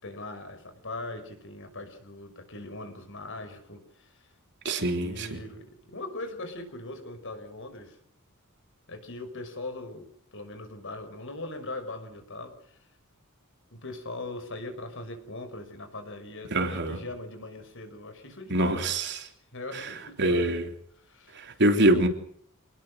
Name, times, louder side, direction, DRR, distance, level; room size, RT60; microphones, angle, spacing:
voice 1, 0.0-4.3 5.0-8.0 8.9-10.1 10.3-12.8 13.7-19.0 19.5-20.6 21.1-21.3, left 2 dB, 60° left, 8 dB, 5.9 m, -40 dB
voice 2, 4.6-5.4 16.5-17.0 18.5-19.3 19.7-20.7 21.3-22.1, right 1 dB, 55° right, 5 dB, 3.6 m, -25 dB
27.5 x 20.0 x 6.4 m, 0.63 s
head